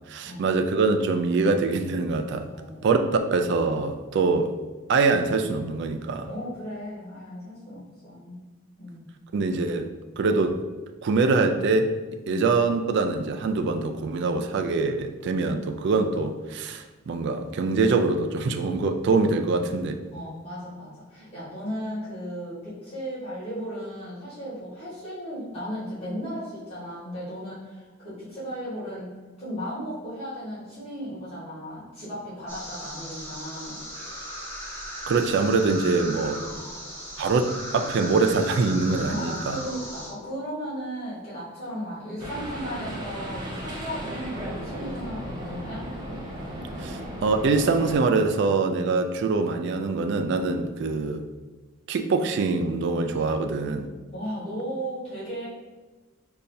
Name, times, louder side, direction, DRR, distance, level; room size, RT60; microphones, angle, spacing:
voice 1, 0.1-2.5 2.8-4.5 4.9-6.3 9.3-9.9 10.2-10.6 11.0-12.0 12.3-20.0 35.1-36.4 37.2-39.6 46.8-51.2 51.9-53.9, right 3 dB, 55° right, 5 dB, 0.3 m, -24 dB
voice 2, 2.5-2.9 6.3-8.4 8.8-9.0 12.3-12.5 20.1-29.1 29.4-33.8 36.3-36.6 39.0-45.9 54.1-55.5, equal, 30° left, -11 dB, 1.4 m, -36 dB
sound 1, 32.5-40.1, equal, 15° left, 1.1 m, -37 dB
sound 2, 42.2-48.0, equal, 20° right, 0.7 m, -35 dB
5.4 x 2.3 x 2.6 m, 1.3 s
head